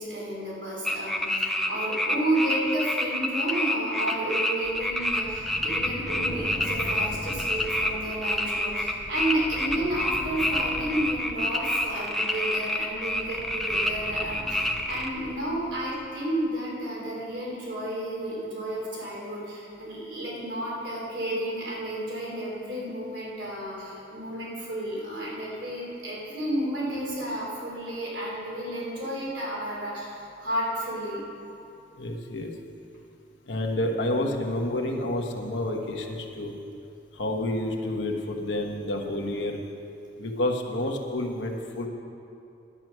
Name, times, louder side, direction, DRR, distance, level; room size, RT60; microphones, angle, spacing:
voice 1, 0.0-31.2, right 1 dB, 80° right, -5 dB, 3.4 m, -31 dB
sound 1, 0.8-15.1, left 1 dB, ahead, 0.6 m, -28 dB
sound 2, 4.6-15.9, equal, 20° left, 1.9 m, -42 dB
voice 2, 32.0-32.5 33.5-36.5 37.1-39.6 40.2-41.9, left 1 dB, 75° left, 1 dB, 1.3 m, -29 dB
11.5 x 9.3 x 6.1 m, 2.7 s
head